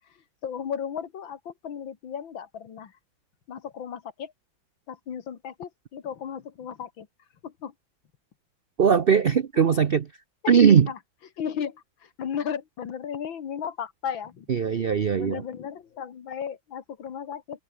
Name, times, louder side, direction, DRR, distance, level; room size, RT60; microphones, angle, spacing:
voice 1, 0.4-2.9 3.5-4.3 4.9-7.1 7.4-7.7 9.5-9.8 10.4-11.0 11.4-14.5 15.2-17.6, left 8 dB, 80° left, 2.5 m, -35 dB
voice 2, 8.8-10.1 10.5-10.9 14.5-15.4, right 7 dB, 90° right, 0.5 m, -19 dB
omnidirectional pair, 2.1 m